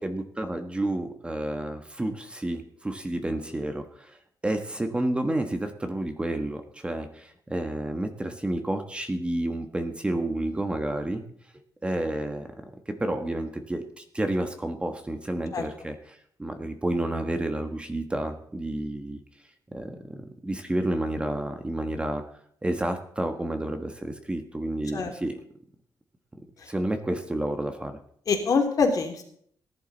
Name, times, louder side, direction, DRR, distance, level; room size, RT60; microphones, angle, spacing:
voice 1, 0.0-4.2 4.4-11.2 11.8-12.5 12.9-19.2 19.7-22.2 22.6-25.4 26.7-28.0, right 1 dB, 15° right, 6 dB, 1.3 m, -30 dB
voice 2, 28.3-29.2, left 4 dB, 55° left, 3 dB, 2.9 m, -24 dB
18.0 x 11.0 x 4.1 m, 0.64 s
wide cardioid pair, 130°, 7 cm